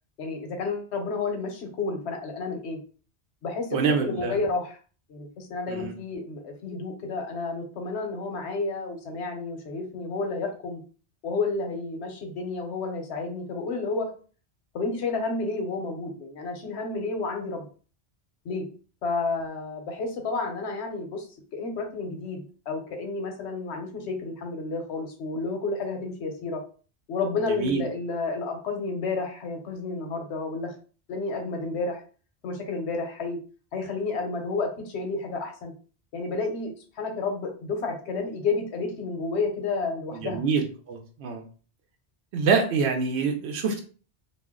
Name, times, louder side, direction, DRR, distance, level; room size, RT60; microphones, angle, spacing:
voice 1, 0.2-2.8 3.4-4.8 5.1-10.8 11.2-14.1 14.7-17.7 18.4-18.7 19.0-21.3 21.5-26.6 27.1-30.7 31.1-32.0 32.4-33.4 33.7-35.7 36.1-40.4, left 3 dB, 85° left, 4 dB, 1.0 m, -31 dB
voice 2, 3.7-4.3 5.7-5.9 27.6-27.8 40.2-40.6 40.9-41.4 42.3-43.8, right 5 dB, 85° right, 4 dB, 0.9 m, -25 dB
2.5 x 2.0 x 3.5 m, 0.38 s
omnidirectional pair, 1.1 m